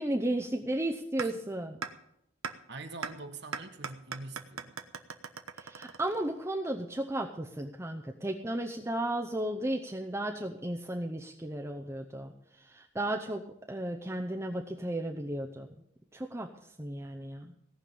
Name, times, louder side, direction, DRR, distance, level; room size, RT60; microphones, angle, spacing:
voice 1, 0.0-1.8 5.6-12.3 12.6-13.4 13.7-15.7 16.1-16.5 16.8-17.5, right 1 dB, 15° right, 2 dB, 0.7 m, -34 dB
sound 1, 1.2-1.3 1.8-1.9 2.4-2.5 3.0-3.1 3.5-6.5, right 6 dB, 85° right, 1.0 m, -38 dB
voice 2, 2.7-4.8, right 3 dB, 50° right, 5 dB, 1.4 m, -44 dB
17.5 x 5.8 x 8.5 m, 0.76 s
head